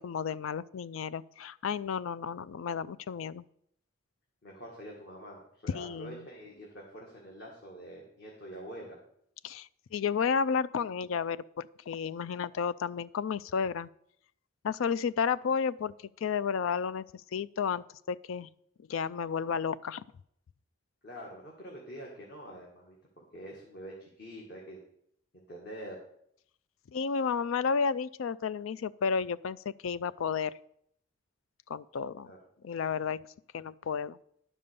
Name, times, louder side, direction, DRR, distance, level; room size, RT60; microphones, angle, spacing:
voice 1, 0.0-3.4 5.7-6.2 9.4-13.9 14.6-15.9 16.2-18.5 18.9-20.0 26.9-30.5 31.7-32.3 32.6-33.2 33.5-34.2, left 6 dB, 85° left, 19 dB, 0.4 m, -32 dB
voice 2, 4.4-9.0 21.0-24.8 25.3-26.0 32.3-32.4, equal, 55° left, -2 dB, 1.9 m, -46 dB
11.0 x 5.5 x 6.7 m, 0.70 s
head